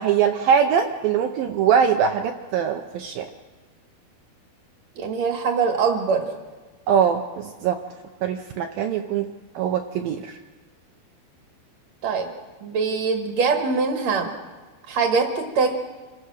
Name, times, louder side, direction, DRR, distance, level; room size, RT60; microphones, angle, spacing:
voice 1, 0.0-3.3 6.9-7.8 8.2-9.3 9.6-10.4, right 7 dB, 75° right, 5 dB, 2.3 m, -22 dB
voice 2, 4.9-6.3 12.0-12.3 12.6-14.3 14.9-15.7, right 5 dB, 50° right, 3 dB, 2.4 m, -23 dB
27.0 x 16.0 x 6.4 m, 1.3 s
omnidirectional pair, 4.7 m